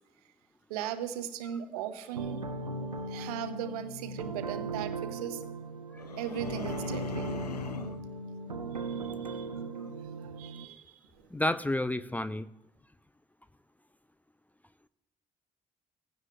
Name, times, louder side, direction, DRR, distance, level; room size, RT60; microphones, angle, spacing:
voice 1, 0.7-2.4 3.1-5.4 6.2-7.3 8.7-9.5 10.2-11.2, right 10 dB, 70° right, 11 dB, 0.9 m, -38 dB
sound 1, 2.1-10.6, right 3 dB, 90° right, 0.5 m, -38 dB
sound 2, 6.0-8.1, left 7 dB, 85° left, 0.5 m, -40 dB
voice 2, 11.3-12.5, left 1 dB, 10° left, 14 dB, 0.5 m, -30 dB
18.0 x 15.5 x 2.3 m, 0.94 s
figure-of-eight pair, 45°, 20 cm